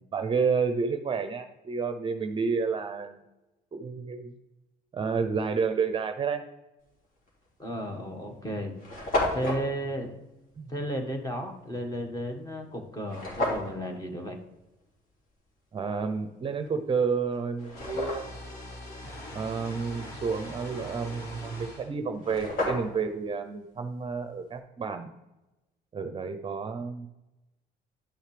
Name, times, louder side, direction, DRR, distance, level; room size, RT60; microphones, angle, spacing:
voice 1, 0.1-3.2 3.7-4.4 4.9-6.4 10.6-10.7 15.7-18.3 19.3-25.1 25.9-27.1, right 5 dB, 30° right, 8 dB, 0.6 m, -30 dB
sound 1, 7.3-7.5 8.2-8.3 8.5-8.6 8.8-9.6 13.1-13.7 16.7-16.8 17.3-18.5 21.8-21.9 22.1-23.1, left 1 dB, 55° left, 2.8 m, -31 dB
voice 2, 7.6-8.7 9.3-10.1 10.7-14.4, equal, 20° left, 4 dB, 1.6 m, -33 dB
sound 2, 17.7-21.9, left 1 dB, 75° left, 3.2 m, -42 dB
11.5 x 6.3 x 3.3 m, 1.0 s
cardioid pair, 110°, 17 cm